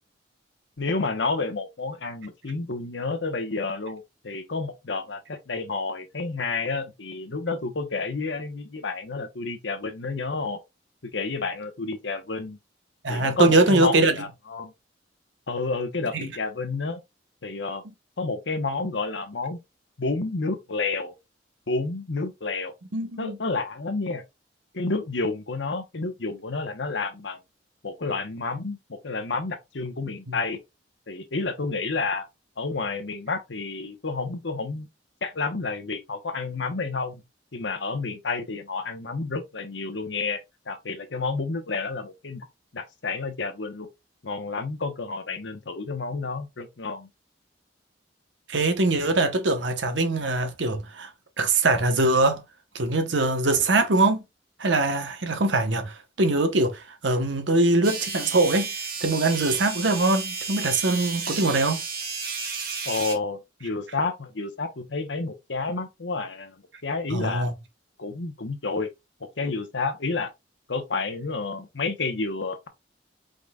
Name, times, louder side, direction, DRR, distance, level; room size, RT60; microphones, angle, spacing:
voice 1, 0.8-10.6 11.0-12.6 13.1-14.7 15.5-17.0 17.4-17.8 18.2-19.6 20.0-21.1 21.7-22.7 23.2-24.2 24.7-27.4 27.8-30.6 31.1-32.3 32.6-34.9 35.2-37.2 37.5-42.5 42.7-43.9 44.2-47.1 62.9-67.5 68.0-68.9 69.2-70.3 70.7-72.7, left 3 dB, 85° left, 1.0 m, -30 dB
voice 2, 13.0-14.1 16.1-16.3 22.9-23.4 30.3-30.4 48.5-51.1 51.4-52.4 52.7-54.2 54.6-58.7 59.0-61.8 67.1-67.5, right 2 dB, 85° right, 1.0 m, -22 dB
sound 1, 57.8-63.2, right 5 dB, 55° right, 1.4 m, -32 dB
5.1 x 3.9 x 2.3 m
head